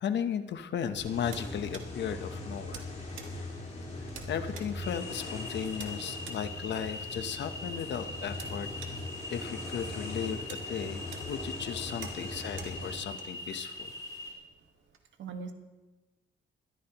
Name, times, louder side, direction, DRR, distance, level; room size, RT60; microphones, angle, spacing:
voice 1, 0.0-2.8 4.3-8.7 9.3-13.9, left 8 dB, 65° left, 9 dB, 1.0 m, -35 dB
sound 1, 0.7-15.0, right 6 dB, 90° right, 1.6 m, -52 dB
sound 2, 0.9-13.0, left 2 dB, 40° left, 4.1 m, -41 dB
sound 3, 4.8-14.3, left 2 dB, 20° left, 2.7 m, -42 dB
voice 2, 15.2-15.5, right 5 dB, 70° right, 5 dB, 1.6 m, -42 dB
21.5 x 13.0 x 3.0 m, 1.1 s
wide cardioid pair, 160°, 20 cm